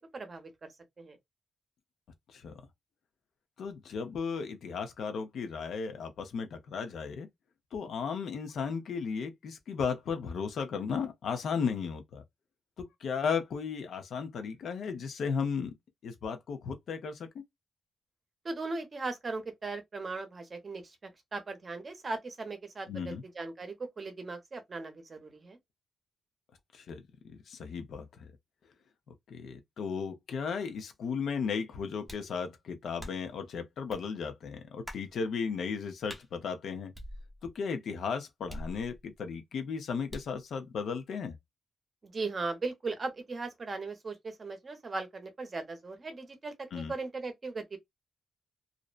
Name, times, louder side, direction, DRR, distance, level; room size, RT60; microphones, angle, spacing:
voice 1, 0.1-0.7 1.0-1.2 18.4-21.0 21.3-25.6 42.0-47.8, right 3 dB, 35° right, 0.7 m, -38 dB
voice 2, 3.6-7.3 7.7-12.2 12.8-15.7 16.0-17.4 22.9-23.2 26.7-28.3 29.3-36.9 37.4-41.4 46.7-46.9, left 6 dB, 70° left, 0.6 m, -35 dB
sound 1, 32.1-32.4 33.0-33.4 33.9-34.1 34.9-35.1 36.1-36.3 36.9-37.6 38.5-39.2 40.1-40.4, equal, ahead, 0.8 m, -44 dB
2.6 x 2.1 x 2.4 m
cardioid pair, 115°, 0 cm